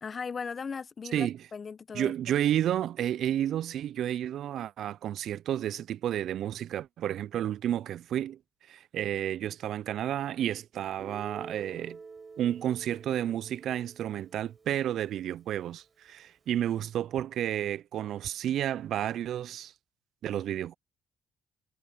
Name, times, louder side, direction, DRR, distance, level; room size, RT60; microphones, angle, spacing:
voice 1, 0.0-2.1, left 5 dB, 45° left, 0.9 m, -38 dB
voice 2, 1.1-1.5 1.9-8.4 8.7-12.0 12.4-19.7 20.2-20.8, right 11 dB, 70° right, 0.3 m, -31 dB
Guitar, 11.0-15.0, right 4 dB, 35° right, 4.7 m, -48 dB
supercardioid pair, 65°, 0 cm